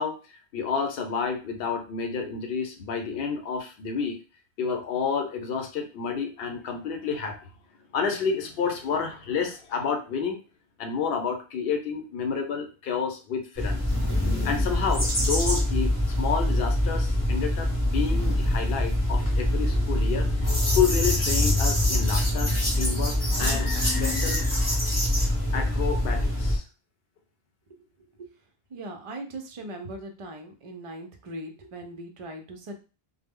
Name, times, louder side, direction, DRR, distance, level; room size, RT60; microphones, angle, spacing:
voice 1, 0.0-4.2 4.6-7.4 7.9-10.4 10.8-13.8 14.4-20.3 20.7-24.4 25.5-26.6, left 6 dB, 65° left, 4 dB, 0.8 m, -30 dB
sound 1, 13.6-26.6, left 1 dB, 20° left, 0.8 m, -24 dB
sound 2, 23.3-25.1, left 5 dB, 35° left, 0.3 m, -41 dB
voice 2, 28.7-32.7, right 1 dB, 60° right, 4 dB, 0.3 m, -39 dB
2.0 x 2.0 x 3.5 m, 0.33 s
omnidirectional pair, 1.1 m